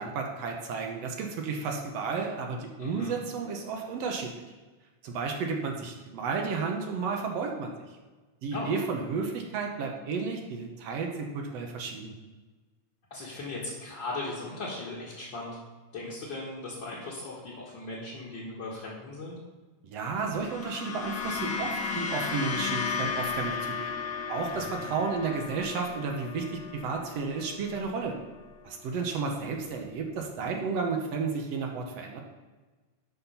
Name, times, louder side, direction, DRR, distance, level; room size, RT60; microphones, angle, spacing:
voice 1, 0.0-4.3 5.0-7.7 8.4-12.1 19.8-24.0 24.3-28.2 28.6-32.2, right 4 dB, 65° right, 2 dB, 1.9 m, -32 dB
voice 2, 2.8-3.1 8.5-8.7 13.1-15.6 15.9-19.4 24.5-24.9, left 2 dB, 45° left, -5 dB, 1.9 m, -38 dB
sound 1, 20.2-28.6, left 5 dB, 65° left, 2.0 m, -35 dB
12.0 x 4.3 x 5.6 m, 1.3 s
omnidirectional pair, 3.5 m